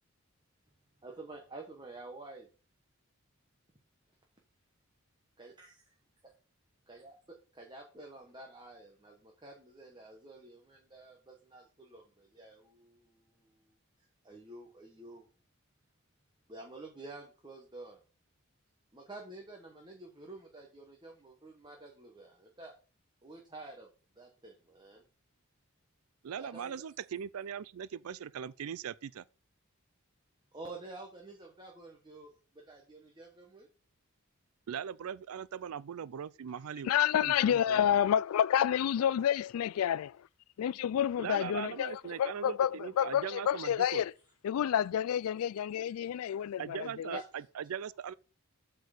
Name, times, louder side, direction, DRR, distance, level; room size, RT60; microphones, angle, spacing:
voice 1, 1.0-2.5 5.4-5.8 6.9-13.6 14.0-15.3 16.5-18.0 18.9-22.7 23.2-23.9 24.2-25.0 26.4-26.7 30.5-33.7 42.1-42.2 46.3-46.4 47.1-47.4, right 2 dB, 20° right, 1.1 m, -50 dB
voice 2, 26.2-29.2 34.7-37.8 41.2-44.0 46.6-48.1, right 8 dB, 80° right, 0.4 m, -40 dB
voice 3, 36.8-40.2 40.6-44.1 44.4-47.2, left 9 dB, 80° left, 0.3 m, -29 dB
8.2 x 4.5 x 6.4 m
head